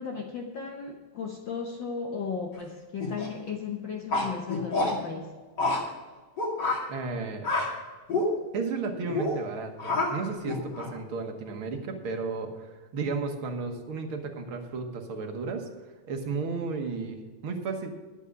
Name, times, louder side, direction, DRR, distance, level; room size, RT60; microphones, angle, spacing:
voice 1, 0.0-5.4, left 5 dB, 75° left, 2 dB, 1.0 m, -35 dB
sound 1, 3.0-3.3 4.1-4.9 5.6-5.8 6.4-6.8 7.4-7.7 8.1-8.3 9.0-9.3 9.8-10.1 10.5-11.0, left 2 dB, 40° left, 2.5 m, -27 dB
voice 2, 6.9-7.5 8.5-15.7 16.1-17.9, right 4 dB, 55° right, 3 dB, 1.8 m, -33 dB
11.5 x 8.3 x 5.9 m, 1.4 s
omnidirectional pair, 3.3 m